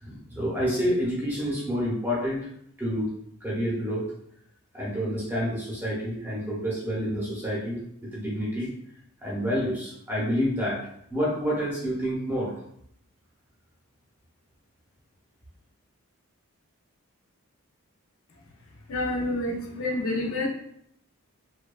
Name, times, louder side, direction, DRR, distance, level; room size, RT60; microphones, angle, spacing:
voice 1, 0.0-2.4 2.8-3.1 3.4-4.1 4.7-7.8 8.1-8.7 9.2-12.6, equal, 10° right, -6 dB, 0.7 m, -28 dB
voice 2, 18.9-20.5, left 2 dB, 65° left, -1 dB, 0.5 m, -28 dB
2.7 x 2.2 x 2.2 m, 0.70 s
head